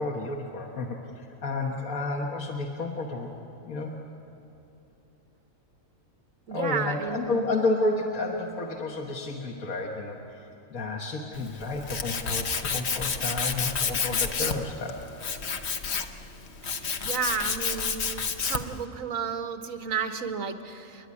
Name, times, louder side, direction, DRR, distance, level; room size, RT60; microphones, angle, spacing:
voice 1, 0.0-3.3 3.6-3.9 6.5-15.0, left 2 dB, 80° left, -1 dB, 1.9 m, -31 dB
voice 2, 6.5-7.5 16.7-21.1, right 6 dB, 75° right, 8 dB, 1.5 m, -32 dB
Tools, 11.3-18.8, left 5 dB, 55° left, 1.2 m, -30 dB
29.5 x 11.0 x 9.8 m, 3.0 s
omnidirectional pair, 1.4 m